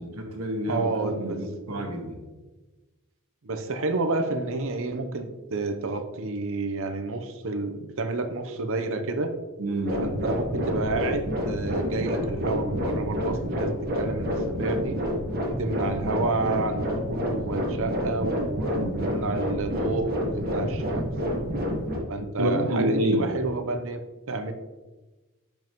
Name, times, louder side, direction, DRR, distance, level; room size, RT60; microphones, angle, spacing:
voice 1, 0.0-2.2 9.6-10.0 18.7-19.1 22.4-23.4, right 1 dB, 90° right, 2 dB, 1.6 m, -28 dB
voice 2, 0.7-1.4 1.7-1.9 3.4-9.3 10.0-15.0 15.6-21.1 22.1-24.0 24.3-24.5, right 3 dB, 65° right, 8 dB, 0.8 m, -30 dB
sound 1, 9.8-22.0, equal, 45° right, 1.6 m, -28 dB
10.5 x 5.5 x 3.1 m, 1.2 s
head